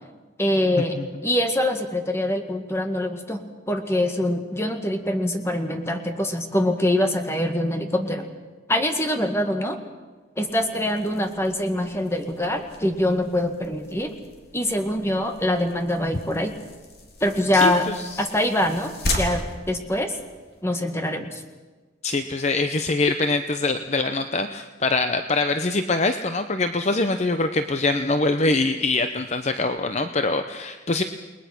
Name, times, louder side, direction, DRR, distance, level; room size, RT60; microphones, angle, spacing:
voice 1, 0.4-3.4 3.7-8.3 8.7-9.8 10.4-14.2 14.5-16.5 17.2-17.9 18.2-18.9 19.2-20.1 20.6-21.4, left 1 dB, 15° left, 5 dB, 1.9 m, -24 dB
sound 1, 10.5-20.6, left 2 dB, 55° left, 3.4 m, -36 dB
voice 2, 17.5-18.2 22.0-31.0, left 3 dB, 35° left, 8 dB, 0.7 m, -24 dB
29.0 x 20.5 x 6.0 m, 1.3 s
head